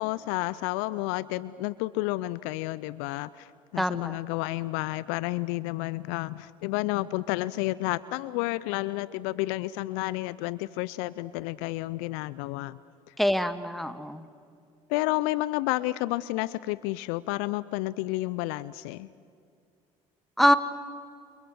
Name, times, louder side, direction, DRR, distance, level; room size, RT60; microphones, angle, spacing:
voice 1, 0.0-12.8 13.1-13.2 14.9-19.1, left 19 dB, 65° left, 19 dB, 0.6 m, -31 dB
voice 2, 3.8-4.2 13.2-14.3 20.4-20.6, equal, ahead, 11 dB, 1.7 m, -24 dB
29.0 x 28.5 x 6.4 m, 2.4 s
figure-of-eight pair, 55°, 17 cm